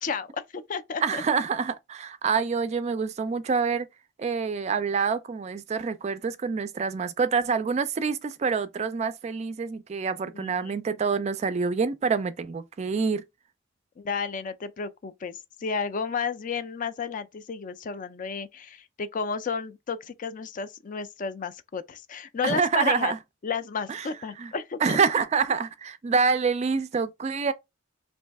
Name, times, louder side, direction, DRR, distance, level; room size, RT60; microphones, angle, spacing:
voice 1, 0.0-1.2 10.3-10.7 14.0-23.1 23.4-25.0, left 5 dB, 40° left, 0.4 m, -32 dB
voice 2, 1.0-3.9 4.2-13.2 22.4-23.2 23.9-24.1 24.4-24.5 24.8-27.5, right 5 dB, 35° right, 0.3 m, -26 dB
3.1 x 2.6 x 3.4 m
head